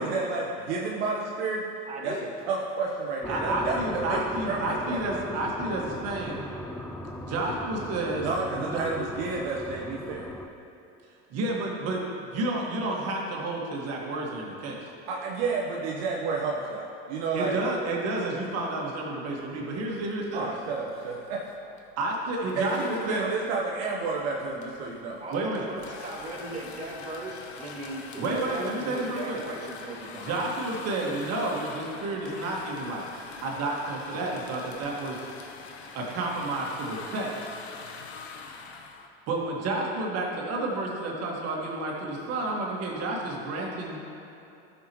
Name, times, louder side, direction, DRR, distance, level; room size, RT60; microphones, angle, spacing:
voice 1, 0.0-1.7 2.0-2.2 2.5-5.0 8.2-10.3 15.1-17.6 20.3-21.4 22.6-25.2, right 4 dB, 70° right, -2 dB, 1.0 m, -30 dB
voice 2, 1.9-2.3 25.2-30.4, right 2 dB, 25° right, -5 dB, 2.1 m, -38 dB
sound 1, 3.2-10.5, left 1 dB, 5° left, 0.5 m, -37 dB
voice 3, 3.3-6.4 7.3-8.3 8.5-8.8 11.3-14.8 17.3-20.5 22.0-23.2 25.3-25.7 28.2-29.4 30.1-33.1 33.4-35.2 35.9-37.5 39.3-44.0, right 2 dB, 50° right, -2 dB, 1.8 m, -30 dB
sound 2, 20.1-20.4 20.6-21.9 22.5-39.1, left 4 dB, 90° left, 0.8 m, -44 dB
13.0 x 6.8 x 3.1 m, 2.8 s
hypercardioid pair, 85°, 32 cm